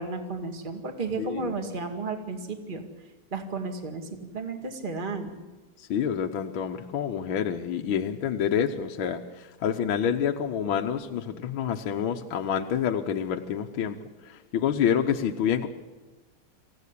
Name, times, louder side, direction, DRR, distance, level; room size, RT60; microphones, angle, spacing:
voice 1, 0.0-2.8 3.3-5.3, right 3 dB, 25° right, 3 dB, 2.2 m, -33 dB
voice 2, 1.2-1.5 5.9-9.2 9.6-14.0 14.5-15.7, left 8 dB, 70° left, 3 dB, 1.7 m, -27 dB
27.5 x 15.5 x 8.4 m, 1.2 s
omnidirectional pair, 2.4 m